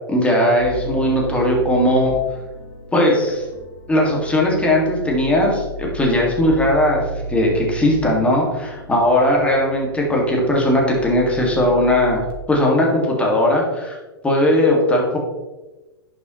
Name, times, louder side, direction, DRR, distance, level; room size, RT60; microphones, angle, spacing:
voice 1, 0.1-2.2 2.9-3.4 3.9-7.0 7.3-12.2 12.5-14.0 14.2-15.2, left 1 dB, 10° left, -2 dB, 2.0 m, -18 dB
sound 1, 0.6-12.3, right 1 dB, 75° left, 1.8 m, -34 dB
10.5 x 5.6 x 3.1 m, 1.1 s
hypercardioid pair, 120°, 13 cm